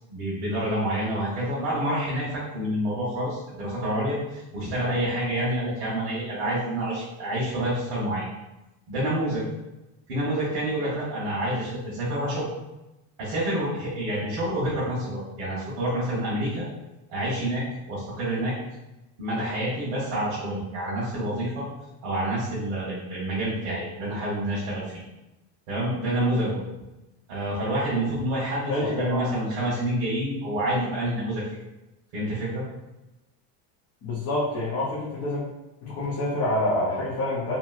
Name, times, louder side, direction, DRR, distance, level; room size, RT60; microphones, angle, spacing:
voice 1, 0.1-8.3 8.9-9.4 10.1-12.5 13.2-16.7 17.1-18.5 19.2-21.6 22.0-25.0 25.7-26.6 27.3-31.4 32.1-32.6, right 1 dB, 75° right, -7 dB, 1.2 m, -28 dB
voice 2, 28.7-29.2 34.0-35.4 35.8-37.6, left 1 dB, 30° left, -7 dB, 0.5 m, -27 dB
3.0 x 2.8 x 2.4 m, 0.99 s
cardioid pair, 170°, 50 cm